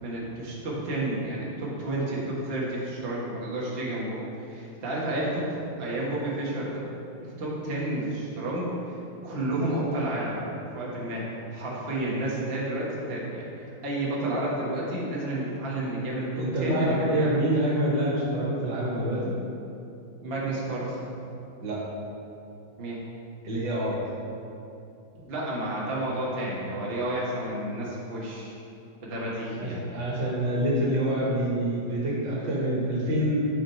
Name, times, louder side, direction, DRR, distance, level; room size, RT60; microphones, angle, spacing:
voice 1, 0.0-4.2 4.5-6.9 7.2-9.0 9.2-10.4 10.7-11.2 11.5-17.4 20.2-21.1 22.8-23.0 25.2-28.6 29.0-29.8, right 1 dB, 35° right, -5 dB, 1.4 m, -31 dB
voice 2, 16.4-19.3 21.6-21.8 23.4-24.0 29.6-33.5, right 1 dB, 70° right, -5 dB, 2.2 m, -26 dB
8.7 x 5.4 x 4.5 m, 2.7 s
omnidirectional pair, 2.1 m